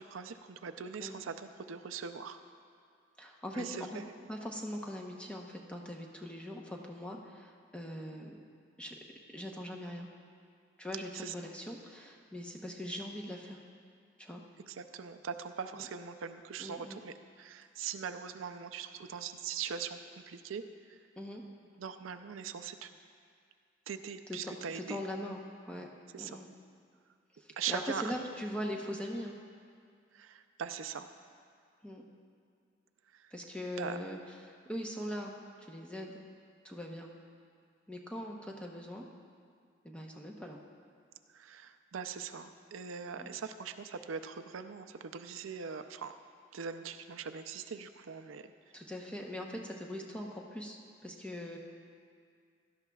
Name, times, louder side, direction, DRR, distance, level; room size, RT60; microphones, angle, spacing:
voice 1, 0.0-2.4 3.5-4.0 11.1-11.3 14.7-20.6 20.9-21.0 21.8-22.9 23.9-25.0 26.1-26.4 27.6-28.0 30.1-31.1 33.1-33.3 33.8-34.0 41.3-46.1 46.5-48.5, right 6 dB, 85° right, 9 dB, 0.5 m, -41 dB
voice 2, 3.2-4.0 4.3-8.4 8.8-9.0 9.3-10.1 10.8-13.6 14.2-14.4 15.7-15.9 16.6-17.0 21.2-21.4 24.3-25.9 26.2-26.5 27.4-29.4 31.8-32.0 33.3-35.3 35.6-36.2 36.6-37.1 37.9-39.0 39.8-40.6 43.1-43.3 48.7-51.6, equal, 5° left, 0 dB, 0.8 m, -41 dB
17.0 x 12.0 x 2.3 m, 2.2 s
head